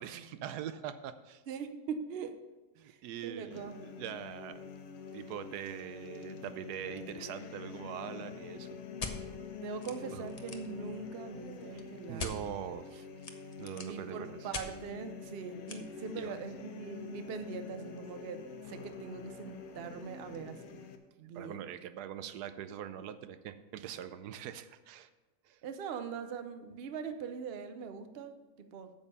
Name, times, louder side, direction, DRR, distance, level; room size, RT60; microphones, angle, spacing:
voice 1, 0.0-1.4 2.8-4.7 5.1-8.7 10.1-10.2 11.7-11.8 12.1-13.1 13.6-14.5 16.2-16.4 21.3-25.1 25.4-25.6, right 10 dB, 80° right, 12 dB, 1.1 m, -43 dB
voice 2, 1.5-2.4 2.8-3.0 3.2-3.8 9.6-12.3 13.8-20.8 21.2-21.6 25.6-28.9, right 6 dB, 50° right, 9 dB, 0.8 m, -42 dB
sound 1, 3.5-21.0, left 6 dB, 70° left, 1.2 m, -46 dB
sound 2, 9.0-9.2 9.8-9.9 10.2-10.7 12.2-12.3 13.2-14.0 14.5-14.7 15.7-15.8, left 4 dB, 40° left, 0.5 m, -40 dB
8.7 x 7.2 x 5.5 m, 1.1 s
omnidirectional pair, 1.7 m